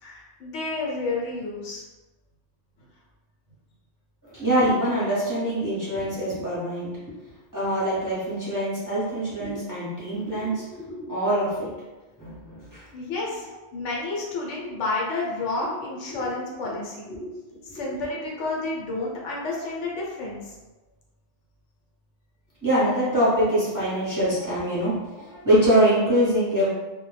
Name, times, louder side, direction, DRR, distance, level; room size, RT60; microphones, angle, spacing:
voice 1, 0.0-1.8 12.9-13.5 13.7-17.2 17.7-20.5, left 3 dB, 75° left, -3 dB, 1.0 m, -30 dB
voice 2, 4.2-6.9 7.5-11.8 12.2-12.9 13.4-13.6 16.1-16.2 16.6-16.7 17.1-17.9 22.6-26.7, equal, 20° right, -10 dB, 0.7 m, -24 dB
2.2 x 2.1 x 3.1 m, 1.1 s
omnidirectional pair, 1.2 m